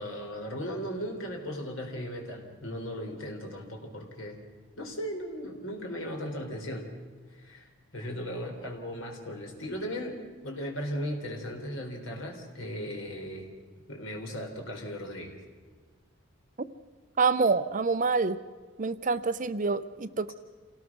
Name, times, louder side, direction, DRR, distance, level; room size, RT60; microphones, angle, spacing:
voice 1, 0.0-4.4 4.8-6.9 7.4-13.5 13.9-15.4, equal, 65° left, 2 dB, 4.1 m, -37 dB
voice 2, 17.2-18.4 18.8-20.3, right 4 dB, 35° right, 13 dB, 0.6 m, -26 dB
27.5 x 18.0 x 6.2 m, 1.5 s
head